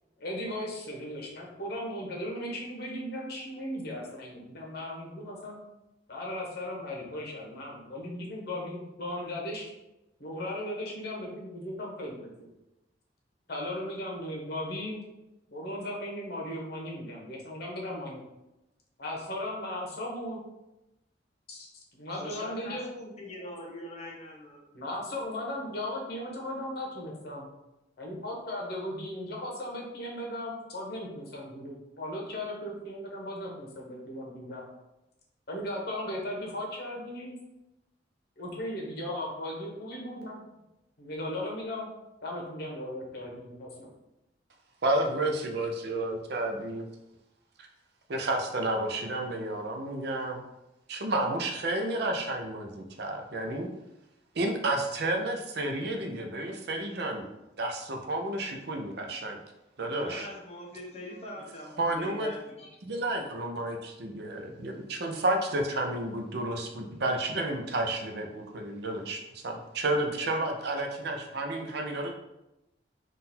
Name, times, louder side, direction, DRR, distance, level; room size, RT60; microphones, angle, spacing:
voice 1, 0.2-5.6 6.1-9.7 10.2-12.5 13.5-15.0 15.5-18.2 19.0-20.4 21.5-21.7 22.0-22.9 24.7-27.5 28.0-34.7 35.5-37.4 38.4-40.4 41.0-41.9 42.2-43.9, left 1 dB, 60° left, -1 dB, 1.2 m, -37 dB
voice 2, 22.2-24.6 59.9-62.8, left 1 dB, 35° left, -1 dB, 0.9 m, -42 dB
voice 3, 44.8-46.9 48.1-50.4 50.9-53.7 54.3-57.3 57.6-59.4 59.8-60.3 61.8-62.3 62.8-72.1, right 2 dB, 65° right, 4 dB, 0.6 m, -31 dB
3.8 x 2.6 x 4.2 m, 0.93 s
head